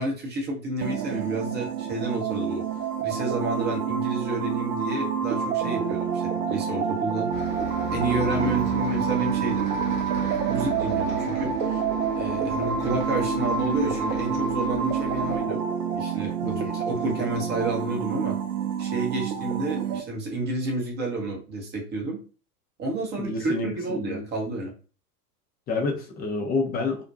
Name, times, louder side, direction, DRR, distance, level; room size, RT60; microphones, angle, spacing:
voice 1, 0.0-2.6 3.0-7.3 7.9-9.7 10.5-11.8 12.1-15.6 15.9-18.4 18.8-22.2 22.8-24.7, right 2 dB, 20° right, 0 dB, 0.7 m, -30 dB
sound 1, 0.8-20.0, right 7 dB, 70° right, 0.6 m, -28 dB
Bus, 7.3-15.4, left 2 dB, 75° left, 0.7 m, -35 dB
voice 2, 23.2-24.2 25.7-27.0, left 3 dB, 20° left, 2 dB, 0.5 m, -29 dB
2.5 x 2.1 x 2.5 m, 0.36 s
figure-of-eight pair, 95°, 48 cm